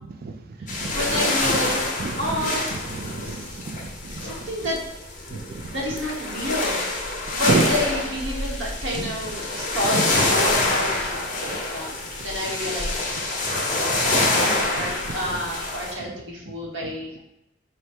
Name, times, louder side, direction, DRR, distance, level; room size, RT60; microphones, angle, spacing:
voice 1, 0.0-1.2 2.0-4.5 5.3-5.7 7.3-7.7 8.9-9.1 11.5-11.6 13.5-13.6 14.1-14.4 14.8-15.4 16.0-16.1 16.5-16.6 16.8-16.9, right 3 dB, 50° right, 6 dB, 0.4 m, -31 dB
sound 1, 0.7-15.9, left 2 dB, 40° left, 0.8 m, -26 dB
voice 2, 0.9-1.9 2.2-2.8 3.2-3.4 4.2-4.8 5.7-6.8 7.3-11.3 11.7-11.9 12.2-13.0 13.4-13.7 14.0-17.2, equal, 70° right, -3 dB, 1.0 m, -29 dB
4.5 x 2.1 x 4.3 m, 0.89 s
head